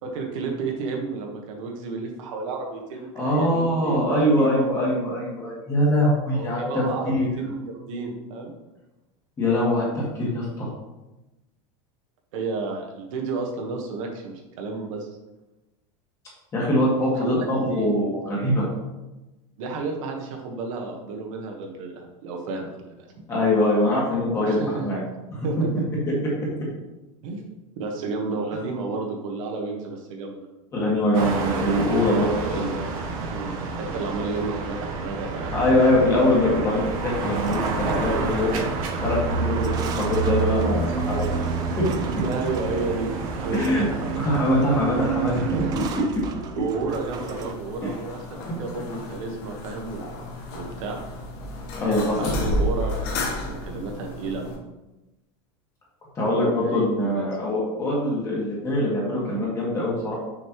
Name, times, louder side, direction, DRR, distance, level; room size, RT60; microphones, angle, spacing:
voice 1, 0.0-5.0 6.3-8.5 12.3-15.1 16.6-16.7 17.2-18.0 19.6-23.1 24.4-24.9 25.4-25.8 27.2-30.5 32.3-32.8 33.3-35.6 38.2-38.4 39.5-39.7 42.2-43.1 43.4-44.1 44.4-44.6 46.5-50.2 50.5-51.0 52.2-54.5 56.6-57.4, right 3 dB, 70° right, 1 dB, 1.3 m, -32 dB
voice 2, 3.1-7.3 9.4-10.7 16.5-18.7 23.3-25.0 30.7-32.7 35.5-38.5 39.0-39.6 39.9-41.5 41.8-41.9 43.5-43.9 44.2-45.8 51.8-52.2 56.1-60.2, left 1 dB, 15° left, -5 dB, 1.6 m, -23 dB
sound 1, 31.1-45.9, right 4 dB, 90° right, 1.1 m, -28 dB
sound 2, 36.9-47.5, right 5 dB, 25° right, 0.4 m, -36 dB
sound 3, 46.9-54.6, left 1 dB, 45° left, 1.1 m, -32 dB
6.2 x 5.3 x 3.0 m, 1.0 s
supercardioid pair, 175°, 17 cm